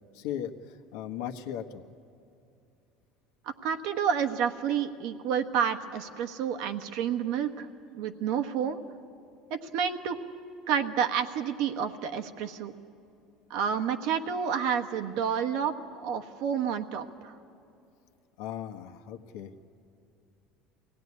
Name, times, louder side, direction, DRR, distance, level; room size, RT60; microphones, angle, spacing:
voice 1, 0.1-1.8 18.4-19.5, left 10 dB, 80° left, 5 dB, 1.3 m, -37 dB
voice 2, 3.4-7.7 7.9-8.8 9.5-10.2 10.7-12.7 13.5-15.7 16.0-17.3, right 7 dB, 75° right, 6 dB, 1.3 m, -29 dB
23.5 x 17.5 x 9.8 m, 2.6 s
supercardioid pair, 110°, 0 cm